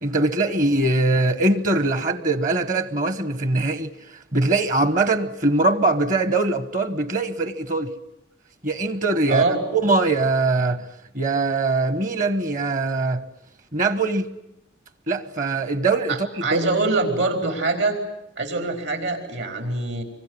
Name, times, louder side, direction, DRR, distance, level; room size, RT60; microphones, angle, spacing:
voice 1, 0.0-3.9 4.3-7.9 8.6-9.4 9.7-10.8 11.1-13.2 13.7-14.2 15.1-16.7, right 2 dB, 45° right, 1.1 m, -22 dB
voice 2, 9.3-9.6 16.1-18.0 18.4-20.0, right 3 dB, 75° right, 5.1 m, -24 dB
25.5 x 23.5 x 9.9 m
head